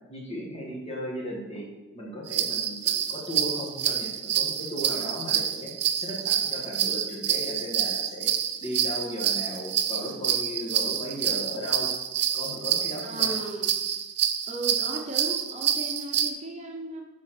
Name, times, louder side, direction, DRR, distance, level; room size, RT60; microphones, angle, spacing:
voice 1, 0.1-1.7 1.9-5.7 6.0-8.3 8.6-11.9 12.3-13.3, equal, 30° left, -3 dB, 1.8 m, -36 dB
sound 1, 2.3-16.3, right 9 dB, 55° right, 0.5 m, -27 dB
voice 2, 13.0-13.7 14.5-17.1, right 2 dB, 35° right, 0 dB, 0.9 m, -36 dB
7.0 x 4.9 x 6.0 m, 1.2 s
head